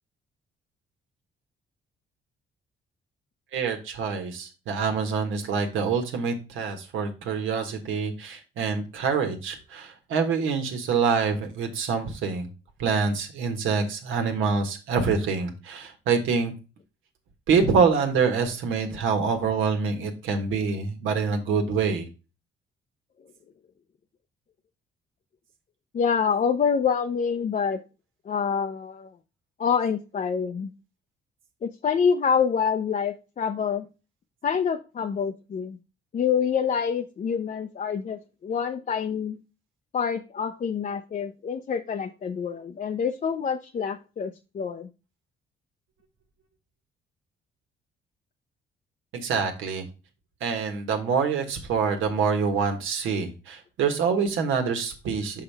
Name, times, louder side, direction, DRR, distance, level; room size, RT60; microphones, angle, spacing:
voice 1, 3.5-12.5 12.8-16.5 17.5-22.1 49.1-49.9 50.4-55.4, right 5 dB, 80° right, 5 dB, 1.4 m, -26 dB
voice 2, 25.9-27.8 28.3-29.2 29.6-30.7 31.6-33.9 34.4-35.8 36.1-39.4 39.9-44.9, left 6 dB, 40° left, 6 dB, 0.5 m, -26 dB
5.8 x 5.6 x 3.4 m, 0.31 s
cardioid pair, 90°, 20 cm